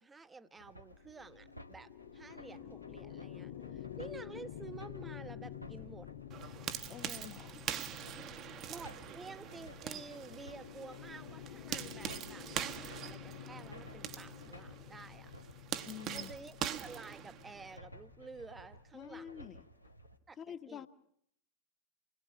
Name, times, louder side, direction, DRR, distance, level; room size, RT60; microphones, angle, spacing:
voice 1, 0.0-6.1 8.7-15.3 16.1-19.6 20.3-20.9, right 4 dB, 15° right, 12 dB, 1.2 m, -51 dB
sound 1, 0.6-20.2, equal, 90° left, 1.9 m, -56 dB
sound 2, 0.9-18.3, left 12 dB, 45° left, 2.6 m, -50 dB
sound 3, 6.3-17.8, right 10 dB, 30° right, 1.1 m, -43 dB
voice 2, 6.9-7.7 8.4-8.5 15.8-16.3 18.9-19.7 20.4-20.9, left 9 dB, 30° left, 10 dB, 1.4 m, -47 dB
29.5 x 21.0 x 5.8 m, 0.70 s
figure-of-eight pair, 90°, 0 cm